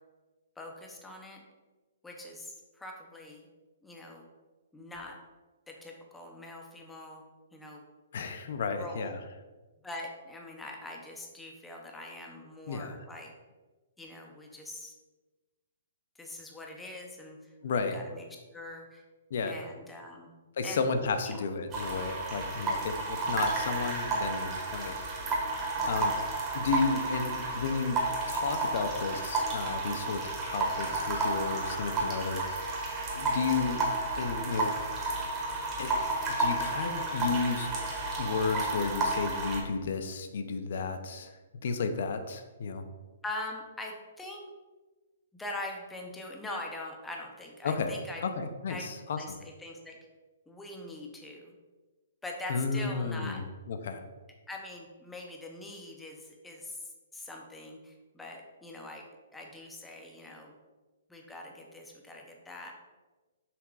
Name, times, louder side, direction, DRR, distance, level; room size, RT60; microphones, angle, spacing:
voice 1, 0.6-1.4 2.0-3.5 3.8-4.3 4.7-5.2 5.7-7.2 7.5-7.8 8.7-9.2 9.8-13.3 14.0-14.9 16.2-18.2 18.5-19.0 19.4-20.4 20.6-20.9 21.3-21.4 25.7-26.1 43.2-44.4 45.3-48.2 48.7-48.9 49.2-50.0 50.5-51.5 52.2-53.4 54.5-59.0 59.3-60.6 61.1-62.7, left 2 dB, 5° left, 1 dB, 0.7 m, -43 dB
voice 2, 8.1-9.2 12.7-13.0 17.6-18.0 19.3-19.6 20.6-24.9 25.9-26.1 26.5-28.0 28.3-32.4 33.1-33.8 34.2-34.7 35.8-36.0 36.4-37.7 38.2-41.3 41.6-42.8 47.6-47.9 48.2-49.4 52.5-54.0, left 4 dB, 55° left, 8 dB, 0.6 m, -32 dB
sound 1, 21.7-39.6, right 2 dB, 15° right, 1.1 m, -32 dB
6.0 x 3.5 x 4.8 m, 1.2 s
hypercardioid pair, 170°, 0 cm